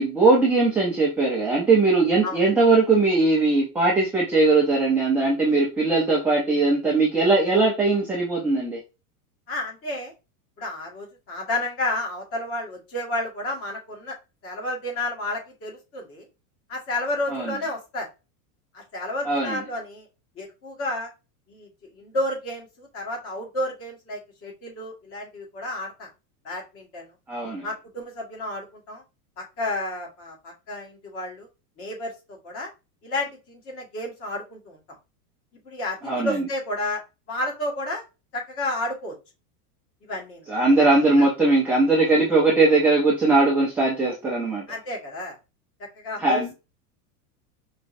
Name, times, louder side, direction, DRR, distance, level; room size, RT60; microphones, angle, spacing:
voice 1, 0.0-8.8 17.3-17.5 19.2-19.6 27.3-27.7 36.0-36.5 40.5-44.6 46.2-46.5, right 3 dB, 5° right, -5 dB, 0.5 m, -20 dB
voice 2, 9.5-10.1 10.6-14.2 14.4-16.2 16.7-18.1 18.7-20.1 20.4-21.1 21.5-26.1 26.4-27.1 27.6-29.0 29.4-31.5 31.8-32.7 33.0-34.8 35.6-37.0 37.3-38.0 38.3-39.1 40.0-40.4 41.2-41.3 44.7-45.4 45.8-46.4, left 1 dB, 30° left, -1 dB, 1.7 m, -31 dB
5.1 x 3.1 x 2.5 m, 0.28 s
supercardioid pair, 165°, 47 cm